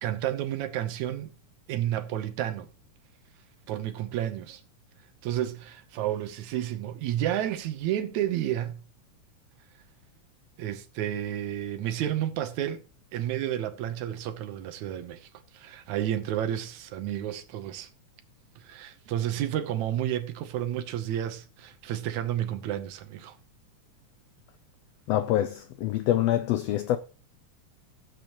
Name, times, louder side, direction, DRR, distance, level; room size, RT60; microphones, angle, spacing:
voice 1, 0.0-1.3 1.7-2.7 3.7-4.6 5.2-8.8 10.6-12.8 13.1-17.9 18.6-23.4, right 11 dB, 75° right, 2.1 m, -31 dB
voice 2, 25.1-27.0, left 13 dB, 90° left, 1.4 m, -25 dB
16.0 x 8.0 x 3.0 m
omnidirectional pair, 3.5 m